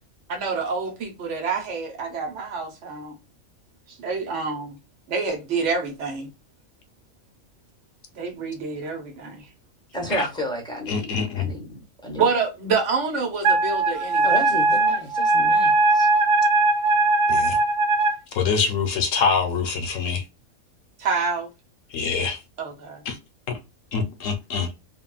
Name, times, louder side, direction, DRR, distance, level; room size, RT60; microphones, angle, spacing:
voice 1, 0.3-3.2 3.9-4.8 5.1-6.3 8.2-9.5 12.2-14.4 21.0-21.5 22.6-23.0, right 5 dB, 65° right, 1.0 m, -27 dB
voice 2, 9.9-12.2 14.2-16.1, equal, 5° left, 0.6 m, -32 dB
voice 3, 10.9-11.5 17.3-17.6 18.3-20.2 21.9-22.4 23.1-23.2 23.5-23.6 23.9-24.7, left 5 dB, 70° left, 1.0 m, -25 dB
Wind instrument woodwind instrument, 13.4-18.2, right 2 dB, 45° right, 0.7 m, -19 dB
3.5 x 2.2 x 2.3 m
omnidirectional pair, 1.4 m